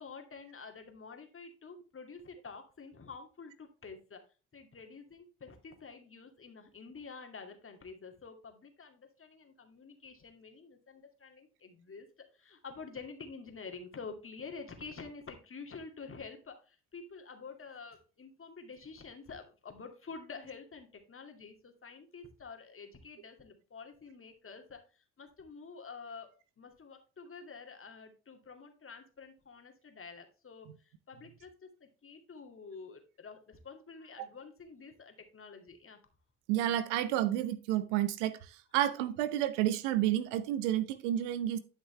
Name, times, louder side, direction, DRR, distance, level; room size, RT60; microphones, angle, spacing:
voice 1, 0.0-4.2 4.5-12.1 12.3-26.3 26.6-36.0, left 4 dB, 35° left, 2.4 m, -49 dB
voice 2, 36.5-38.4 38.7-41.6, right 12 dB, 85° right, 0.9 m, -30 dB
11.5 x 6.0 x 3.3 m
hypercardioid pair, 55°, 35 cm